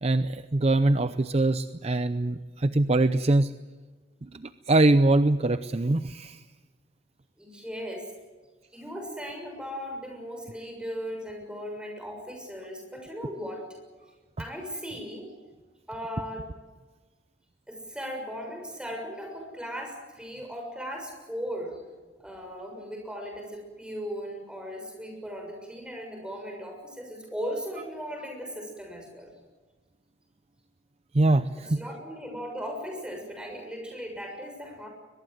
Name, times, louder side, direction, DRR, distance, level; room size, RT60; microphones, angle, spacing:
voice 1, 0.0-3.5 4.7-6.4 31.1-31.8, right 2 dB, 35° right, 12 dB, 0.6 m, -23 dB
voice 2, 7.4-8.1 8.7-13.8 14.4-15.3 15.9-16.5 17.7-21.8 22.2-29.3 31.6-34.9, equal, 5° right, 2 dB, 6.7 m, -37 dB
22.5 x 21.5 x 7.9 m, 1.3 s
head